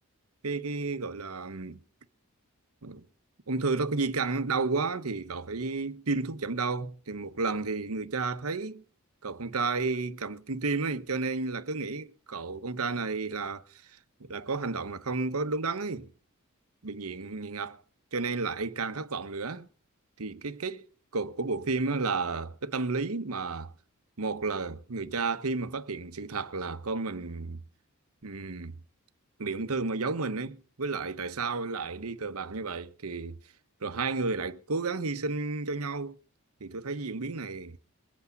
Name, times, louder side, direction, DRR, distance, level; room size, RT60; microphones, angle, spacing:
voice 1, 0.4-1.8 2.8-3.1 3.5-8.8 9.2-13.8 14.2-16.1 16.8-17.8 18.1-19.7 20.2-23.7 24.2-27.6 28.2-28.7 29.4-33.4 33.8-36.2 36.6-37.8, right 3 dB, 85° right, 1.1 m, -32 dB
22.5 x 8.4 x 5.3 m
head